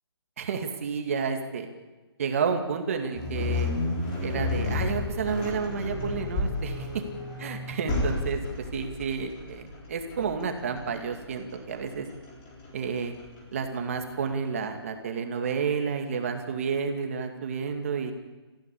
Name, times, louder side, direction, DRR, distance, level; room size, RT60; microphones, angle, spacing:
voice 1, 0.4-1.7 2.2-3.7 4.2-6.9 7.4-8.4 8.7-12.1 12.7-13.1 13.5-18.1, right 6 dB, 30° right, 5 dB, 2.3 m, -30 dB
sound 1, 3.2-14.3, left 2 dB, 15° left, 4.2 m, -32 dB
25.0 x 15.5 x 8.5 m, 1.2 s
hypercardioid pair, 170°, 14 cm